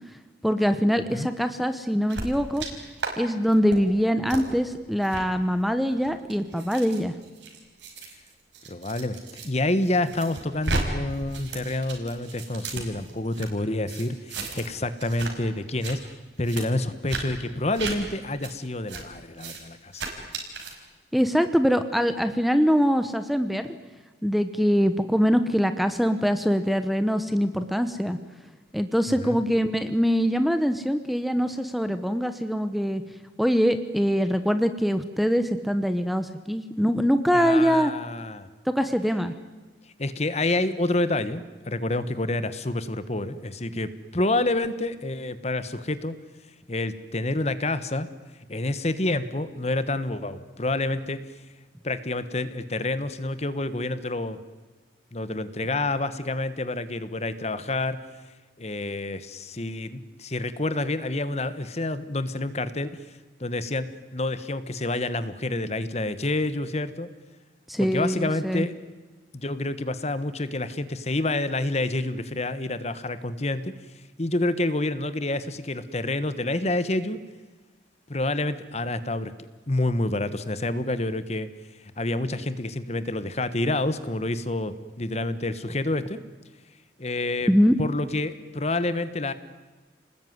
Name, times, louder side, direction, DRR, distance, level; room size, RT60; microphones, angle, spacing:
voice 1, 0.4-2.6 3.2-7.1 21.1-23.7 24.2-28.2 28.7-33.0 33.4-37.9 38.7-39.3 67.7-68.7 87.5-87.8, equal, ahead, 10 dB, 1.0 m, -23 dB
sound 1, 2.1-2.7 3.0-3.1 3.5-3.8 4.3-4.4 5.0-5.2 5.9-9.5 9.8-10.8 11.1-13.5 13.9-14.7 15.0-15.3 15.6-15.9 16.4-16.6 17.1-17.2 17.7-17.9 18.4-18.5 18.9-19.0 19.4-19.6 19.9-20.7, right 3 dB, 75° right, 5.3 m, -34 dB
voice 2, 8.7-9.2 9.4-16.0 16.4-20.0 29.1-29.4 37.3-38.5 40.0-46.1 46.7-48.1 48.5-51.2 51.8-54.4 55.1-58.0 58.6-63.0 63.4-63.9 64.1-67.1 67.8-68.7 69.3-73.7 74.2-77.2 78.1-79.3 79.7-81.5 82.0-86.2 87.0-87.5 87.8-89.3, left 2 dB, 35° left, 13 dB, 1.3 m, -28 dB
29.5 x 20.0 x 9.5 m, 1.3 s
head